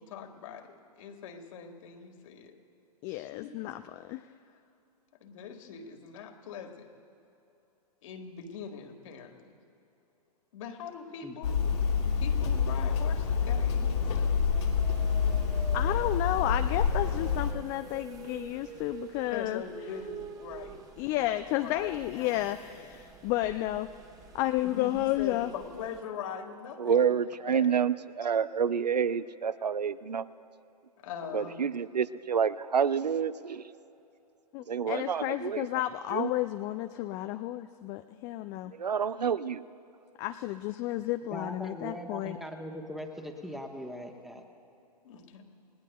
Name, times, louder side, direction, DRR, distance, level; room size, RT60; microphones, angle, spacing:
voice 1, 0.0-2.6 3.1-3.5 5.2-6.9 8.0-9.5 10.5-11.7 12.2-14.4 19.3-20.8 21.1-22.4 24.6-27.0 27.5-27.7 31.0-31.7 45.0-45.5, left 6 dB, 55° left, 4 dB, 1.8 m, -42 dB
voice 2, 3.0-4.3 15.7-19.6 21.0-23.9 24.3-25.5 34.5-38.7 40.2-42.4, left 15 dB, 25° left, 9 dB, 0.3 m, -32 dB
Hammer, 11.4-17.5, left 6 dB, 70° left, 2.5 m, -27 dB
sound 1, 14.5-26.0, right 5 dB, 20° right, 1.3 m, -47 dB
voice 3, 26.8-30.3 31.3-33.7 34.7-35.7 36.1-36.3 38.7-39.6, right 7 dB, 85° right, 15 dB, 0.6 m, -28 dB
voice 4, 41.3-44.4, equal, ahead, 3 dB, 1.2 m, -40 dB
29.0 x 18.5 x 2.3 m, 2.8 s
figure-of-eight pair, 115°, 21 cm